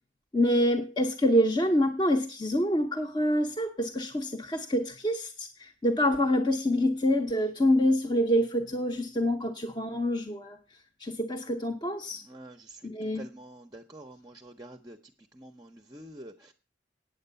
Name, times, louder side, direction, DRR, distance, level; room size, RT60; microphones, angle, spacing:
voice 1, 0.3-10.6 11.0-12.2 12.8-13.2, equal, 25° left, 4 dB, 0.7 m, -26 dB
voice 2, 12.2-15.0 15.3-16.5, right 1 dB, 20° right, 5 dB, 0.6 m, -47 dB
9.1 x 7.8 x 6.7 m, 0.35 s
head